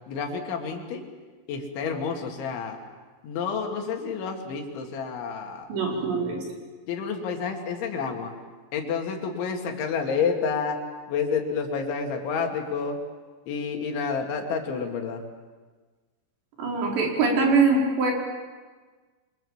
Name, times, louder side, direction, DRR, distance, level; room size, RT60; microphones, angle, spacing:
voice 1, 0.1-1.1 1.5-2.8 3.2-6.3 6.9-8.3 8.7-13.0 13.5-15.2, left 5 dB, 80° left, 3 dB, 4.8 m, -29 dB
voice 2, 5.7-6.4 16.6-18.1, right 4 dB, 70° right, -1 dB, 6.8 m, -23 dB
29.0 x 25.0 x 7.4 m, 1.4 s
omnidirectional pair, 5.3 m